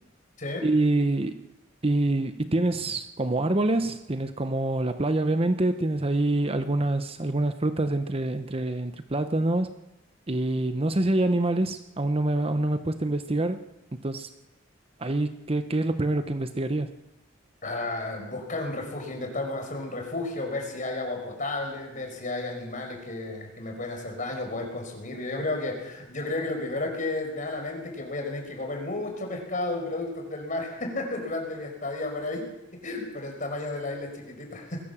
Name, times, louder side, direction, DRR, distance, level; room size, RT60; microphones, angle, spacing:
voice 1, 0.6-1.4 1.8-9.7 10.3-13.6 14.0-14.3 15.0-16.9, right 2 dB, 30° right, 9 dB, 0.8 m, -26 dB
voice 2, 17.6-32.5 32.8-34.8, left 2 dB, 45° left, 3 dB, 5.4 m, -32 dB
21.5 x 16.5 x 7.3 m, 0.93 s
head